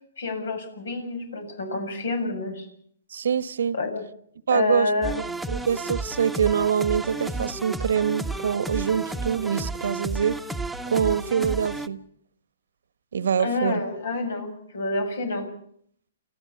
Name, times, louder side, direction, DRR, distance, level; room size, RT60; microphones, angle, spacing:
voice 1, 0.2-2.7 3.7-4.0 4.5-5.2 13.4-15.5, left 2 dB, 80° left, 7.3 m, -28 dB
voice 2, 3.1-3.8 4.5-4.9 5.5-10.4 10.9-12.0 13.1-13.8, right 7 dB, 80° right, 1.2 m, -25 dB
sound 1, 5.0-11.9, right 2 dB, ahead, 1.2 m, -32 dB
29.5 x 14.5 x 7.0 m
hypercardioid pair, 140°, 0 cm